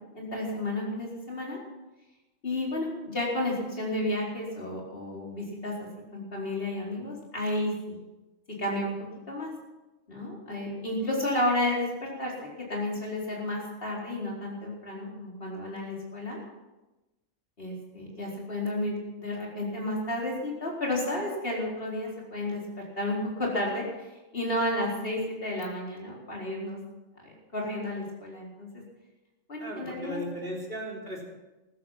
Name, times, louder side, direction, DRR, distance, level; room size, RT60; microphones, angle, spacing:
voice 1, 0.1-1.6 2.4-8.0 8.6-8.9 9.3-9.5 10.1-12.3 12.7-16.4 17.6-22.6 23.0-24.1 24.3-26.8 27.2-28.7 29.5-30.2, left 1 dB, 45° left, -3 dB, 4.8 m, -32 dB
voice 2, 29.6-31.2, equal, 45° right, -2 dB, 3.9 m, -36 dB
14.5 x 14.0 x 5.9 m, 1.1 s
omnidirectional pair, 1.4 m